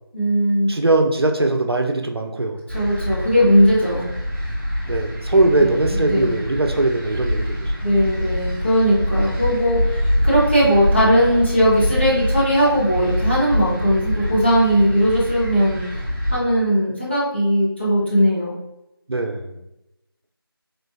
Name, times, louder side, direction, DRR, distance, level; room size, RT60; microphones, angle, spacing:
voice 1, 0.1-0.7 2.7-4.1 5.6-6.3 7.8-16.0 16.3-18.6, equal, 30° left, -8 dB, 0.8 m, -18 dB
voice 2, 0.7-2.6 4.9-7.7 19.1-19.6, right 2 dB, 80° right, 3 dB, 0.6 m, -20 dB
sound 1, 2.7-16.4, equal, 15° right, 0.9 m, -25 dB
3.8 x 2.3 x 2.5 m, 0.89 s
figure-of-eight pair, 175°, 13 cm